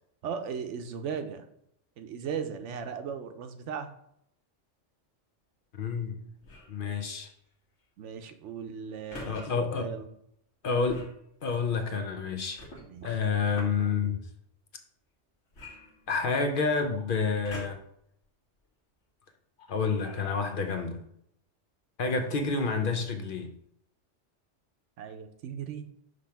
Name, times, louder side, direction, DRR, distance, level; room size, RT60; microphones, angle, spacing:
voice 1, 0.2-1.5 2.0-3.9 8.0-10.1 12.8-13.2 25.0-25.8, right 7 dB, 80° right, 8 dB, 1.0 m, -37 dB
voice 2, 5.7-6.2 6.7-7.3 9.2-9.9 10.6-11.1 11.4-12.6 13.0-14.2 16.1-17.8 19.7-21.0 22.0-23.5, left 4 dB, 55° left, 6 dB, 0.7 m, -29 dB
sound 1, 6.4-6.8 9.1-9.4 10.8-11.2 12.6-13.9 15.5-16.5 17.4-18.0 18.6-18.7, left 2 dB, 75° left, 1.5 m, -45 dB
5.2 x 3.4 x 5.6 m, 0.73 s
omnidirectional pair, 1.2 m